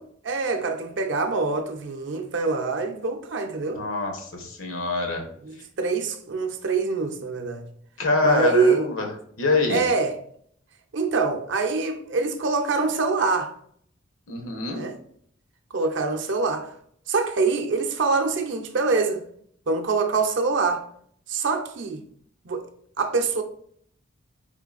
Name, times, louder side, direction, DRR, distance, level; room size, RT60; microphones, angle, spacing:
voice 1, 0.2-3.9 5.4-7.7 8.2-8.9 9.7-10.1 10.9-13.5 14.7-15.0 15.7-16.7 17.1-19.2 19.7-20.9 21.3-22.0 22.5-22.6 23.0-23.4, right 4 dB, 60° right, 0.5 m, -24 dB
voice 2, 3.6-5.2 8.0-9.1 9.4-9.8 14.3-14.9, left 3 dB, 85° left, 1.0 m, -25 dB
4.5 x 3.7 x 2.4 m
head